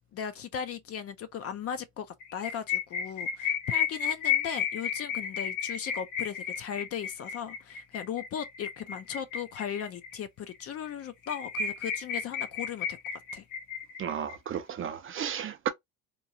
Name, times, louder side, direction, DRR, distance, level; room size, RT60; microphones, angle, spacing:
voice 1, 0.1-2.1 2.3-13.0 13.3-13.4, left 8 dB, 40° left, 0.4 m, -37 dB
sound 1, 2.2-10.1 10.5-10.6 10.9-11.0 11.2-14.3, left 7 dB, 60° left, 1.0 m, -33 dB
voice 2, 14.0-15.7, right 9 dB, 35° right, 0.4 m, -33 dB
3.0 x 2.3 x 2.6 m
cardioid pair, 115°, 39 cm